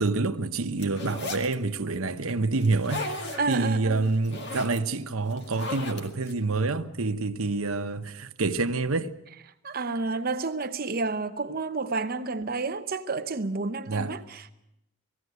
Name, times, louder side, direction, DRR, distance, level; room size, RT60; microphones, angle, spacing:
voice 1, 0.0-9.1 13.9-14.1, right 3 dB, 85° right, 1.0 m, -27 dB
sound 1, 0.8-1.5 2.6-3.6 4.0-4.8 5.3-6.3, left 2 dB, 55° left, 2.1 m, -35 dB
voice 2, 3.4-4.0 9.6-14.5, right 3 dB, 45° right, 0.8 m, -30 dB
20.0 x 15.5 x 9.4 m
head